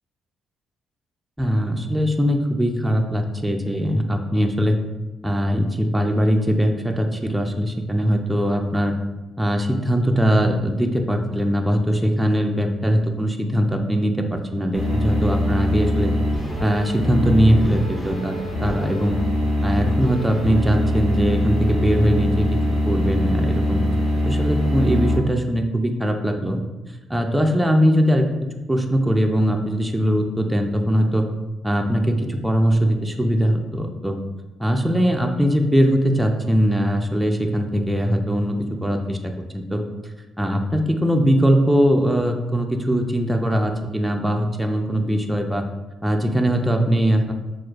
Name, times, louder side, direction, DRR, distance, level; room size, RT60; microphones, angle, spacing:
voice 1, 1.4-4.8 5.2-8.9 9.4-16.1 16.6-19.2 19.6-22.5 22.8-23.8 24.2-26.6 27.1-28.3 28.7-31.3 31.6-34.2 34.6-39.8 40.4-45.6 46.0-47.3, equal, 5° right, 3 dB, 0.4 m, -21 dB
sound 1, 14.7-25.2, equal, 20° left, 1.0 m, -23 dB
6.0 x 2.3 x 2.4 m, 1.1 s
cardioid pair, 90°, 0 cm